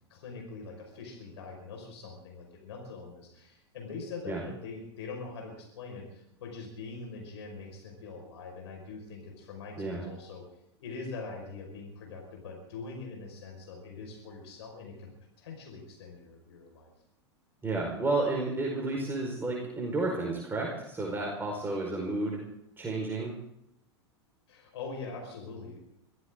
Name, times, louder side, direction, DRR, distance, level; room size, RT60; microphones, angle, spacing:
voice 1, 0.1-10.4 10.8-15.1 15.4-16.9 24.5-25.8, left 4 dB, 70° left, 1 dB, 5.5 m, -43 dB
voice 2, 17.6-22.4 22.8-23.3, right 2 dB, 15° right, -2 dB, 5.0 m, -31 dB
24.5 x 15.5 x 3.8 m, 0.79 s
hypercardioid pair, 95°, 15 cm